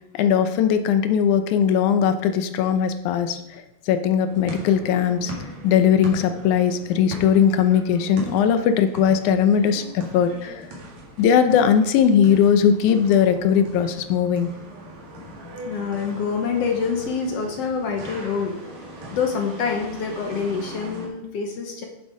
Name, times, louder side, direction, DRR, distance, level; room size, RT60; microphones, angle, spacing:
voice 1, 0.1-5.3 5.6-10.6 11.2-14.5, left 8 dB, 85° left, 8 dB, 2.2 m, -19 dB
sound 1, 4.2-21.1, equal, 65° right, 3.3 m, -40 dB
voice 2, 15.7-18.6 19.1-21.9, left 5 dB, 65° left, 3 dB, 2.0 m, -26 dB
10.0 x 7.4 x 4.8 m, 0.98 s
omnidirectional pair, 3.4 m